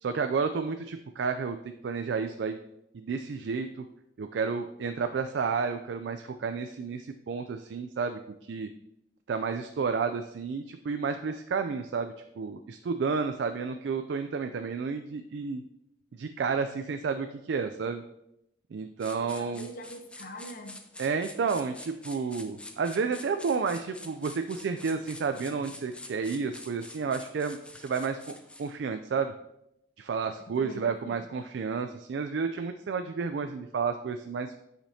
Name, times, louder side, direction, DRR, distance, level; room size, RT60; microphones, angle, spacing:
voice 1, 0.0-1.6 1.8-2.6 2.9-3.9 4.2-8.7 9.3-15.6 16.1-18.0 18.7-19.7 21.0-28.3 28.6-29.3 30.0-34.6, right 5 dB, 70° right, 8 dB, 0.3 m, -31 dB
sound 1, 19.0-28.7, left 2 dB, 5° left, 0.4 m, -47 dB
voice 2, 19.2-20.8 30.6-31.2, left 1 dB, 50° left, 4 dB, 0.7 m, -43 dB
8.8 x 5.1 x 2.7 m, 0.82 s
head